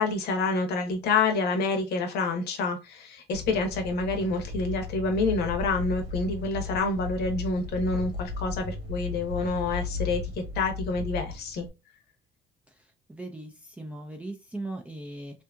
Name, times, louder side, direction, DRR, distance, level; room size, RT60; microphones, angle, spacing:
voice 1, 0.0-10.2 10.5-11.6, left 3 dB, 70° left, 0.8 m, -28 dB
sound 1, 3.3-11.7, left 5 dB, 80° right, 1.1 m, -35 dB
voice 2, 13.1-15.4, right 2 dB, 10° right, 0.4 m, -38 dB
2.7 x 2.5 x 2.3 m
cardioid pair, 110°, 17 cm